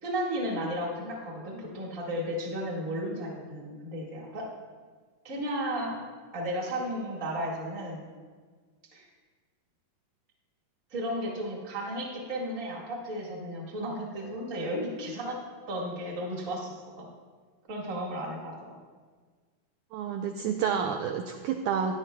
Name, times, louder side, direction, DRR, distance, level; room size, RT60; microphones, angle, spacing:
voice 1, 0.0-4.5 5.2-6.0 6.3-8.0 8.9-9.0 10.9-15.4 15.7-17.1 17.7-18.7, equal, 30° right, -3 dB, 1.4 m, -34 dB
voice 2, 19.9-21.9, right 7 dB, 80° right, 3 dB, 1.8 m, -29 dB
16.0 x 10.5 x 2.3 m, 1.5 s
omnidirectional pair, 4.0 m